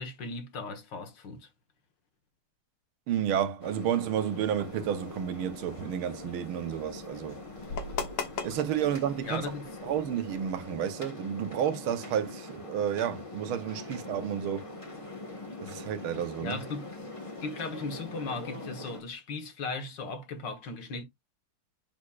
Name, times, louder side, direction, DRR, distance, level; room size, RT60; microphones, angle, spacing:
voice 1, 0.0-1.5 9.2-9.7 16.4-16.9 17.4-21.0, left 3 dB, 60° left, 1.9 m, -37 dB
voice 2, 3.1-7.4 8.4-9.4 9.8-14.7 15.6-16.6, right 9 dB, 75° right, 1.7 m, -31 dB
sound 1, 3.6-19.0, left 2 dB, 15° left, 1.3 m, -43 dB
sound 2, 4.6-10.6, left 5 dB, 80° left, 2.3 m, -41 dB
7.2 x 6.4 x 2.4 m
omnidirectional pair, 2.4 m